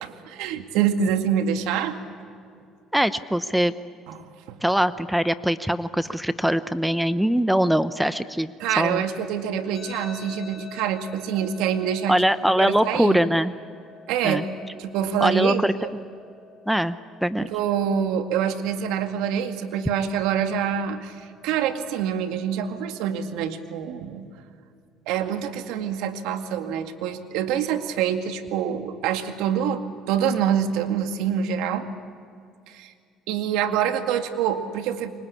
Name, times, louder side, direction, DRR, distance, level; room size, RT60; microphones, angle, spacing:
voice 1, 0.0-2.0 4.1-4.2 4.5-4.6 8.6-12.2 12.6-13.2 14.1-14.5 14.8-15.6 17.4-24.3 25.1-29.8 30.1-31.9 32.7-32.9 33.3-35.1, right 8 dB, 85° right, 7 dB, 2.1 m, -26 dB
voice 2, 2.9-3.7 4.6-9.0 12.1-13.5 14.2-14.4 15.2-15.7 16.7-17.5, equal, 5° right, 13 dB, 0.8 m, -22 dB
sound 1, 9.7-22.7, left 4 dB, 25° left, 7.4 m, -48 dB
28.5 x 24.5 x 8.5 m, 2.4 s
cardioid pair, 105°, 0 cm